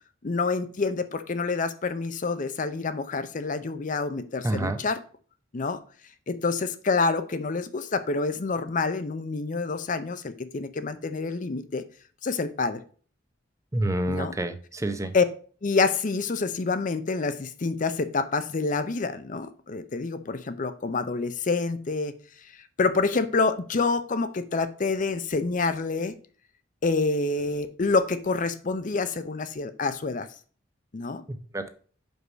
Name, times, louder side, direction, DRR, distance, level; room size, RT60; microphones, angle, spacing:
voice 1, 0.2-5.0 5.5-5.8 6.3-11.8 12.2-12.8 14.1-14.3 15.1-15.2 15.6-26.1 26.8-30.3 30.9-31.2, left 4 dB, 40° left, 11 dB, 0.5 m, -27 dB
voice 2, 4.4-4.8 13.7-15.1 31.3-31.7, right 1 dB, 15° right, 9 dB, 0.7 m, -28 dB
5.3 x 4.7 x 6.1 m, 0.42 s
head